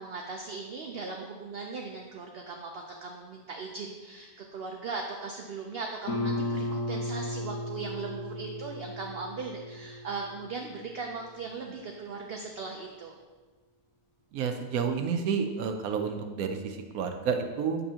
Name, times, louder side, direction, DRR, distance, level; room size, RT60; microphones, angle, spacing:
voice 1, 0.0-13.1, right 4 dB, 60° right, 1 dB, 0.6 m, -38 dB
Guitar, 6.1-11.5, left 2 dB, 70° left, 1.5 m, -35 dB
voice 2, 14.3-17.8, right 6 dB, 90° right, 6 dB, 1.1 m, -30 dB
7.6 x 5.5 x 2.8 m, 1.3 s
omnidirectional pair, 1.5 m